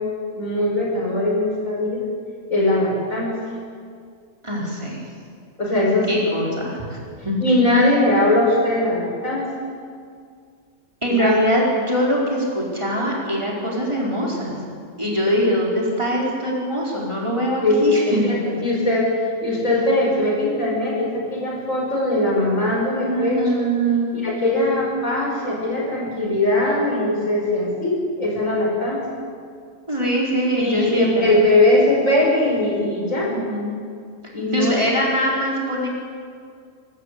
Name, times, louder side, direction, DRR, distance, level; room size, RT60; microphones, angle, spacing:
voice 1, 0.3-2.0 2.5-3.3 5.6-6.1 7.4-9.5 11.1-11.4 17.6-19.1 19.4-23.4 24.1-29.1 30.6-33.3 34.3-34.8, left 1 dB, 80° left, -3 dB, 5.9 m, -20 dB
voice 2, 4.4-5.1 6.1-7.0 7.2-7.4 11.0-14.5 15.0-18.3 23.0-24.3 29.9-31.4 33.2-33.8 34.5-35.9, equal, 20° right, -4 dB, 4.3 m, -22 dB
23.5 x 13.5 x 8.4 m, 2.2 s
omnidirectional pair, 1.4 m